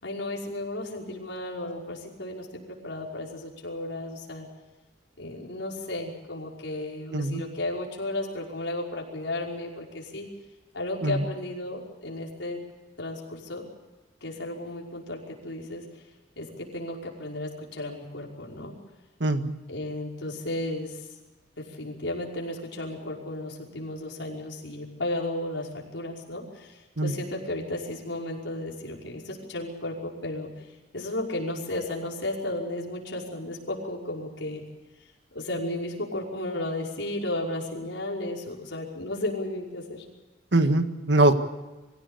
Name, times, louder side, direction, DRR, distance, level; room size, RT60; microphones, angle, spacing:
voice 1, 0.0-4.5 5.2-10.3 10.7-12.6 13.0-13.7 14.2-15.9 16.4-18.7 19.7-21.1 21.6-30.7 30.9-34.6 35.3-40.1, left 1 dB, 90° left, -2 dB, 5.5 m, -34 dB
voice 2, 19.2-19.5 27.0-27.2 40.5-41.3, right 2 dB, 70° right, 8 dB, 1.8 m, -22 dB
24.5 x 16.5 x 8.4 m, 1.2 s
head